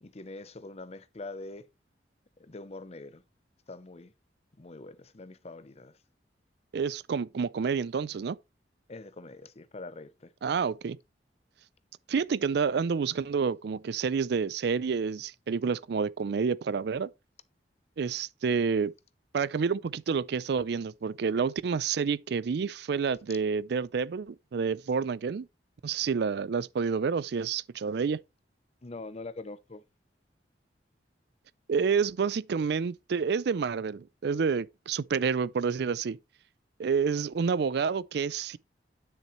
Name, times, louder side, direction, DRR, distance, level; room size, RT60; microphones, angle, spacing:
voice 1, 0.0-1.7 2.5-3.2 3.7-4.1 4.6-6.0 8.9-10.3 28.8-29.8, left 2 dB, 35° left, 0.7 m, -43 dB
voice 2, 6.7-8.4 10.4-11.0 12.1-17.1 18.0-18.9 19.3-25.5 25.8-28.2 31.7-36.2 36.8-38.6, right 5 dB, 65° right, 0.4 m, -29 dB
10.0 x 6.2 x 3.1 m
head